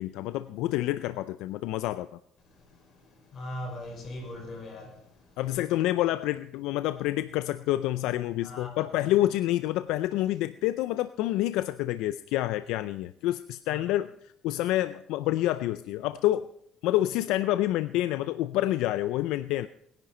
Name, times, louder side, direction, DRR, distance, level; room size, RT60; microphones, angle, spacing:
voice 1, 0.0-2.1 5.4-14.1 14.4-16.5 16.8-19.7, left 15 dB, 85° left, 0.5 m, -28 dB
voice 2, 3.3-4.9 8.4-8.9 13.7-13.8, left 1 dB, 45° left, 6.1 m, -39 dB
20.5 x 10.5 x 4.4 m
cardioid pair, 110°, 0 cm